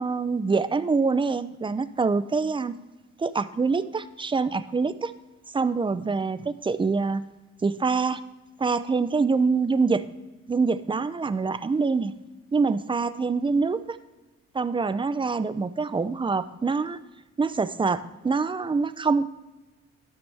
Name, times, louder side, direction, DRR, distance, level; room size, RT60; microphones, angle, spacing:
voice 1, 0.0-2.7 3.2-5.1 5.5-7.2 7.6-8.2 8.6-10.0 10.5-12.2 12.5-14.0 14.5-17.0 17.4-19.3, right 4 dB, 15° right, 14 dB, 0.5 m, -25 dB
12.0 x 5.9 x 3.4 m, 1.1 s
cardioid pair, 90°, 30 cm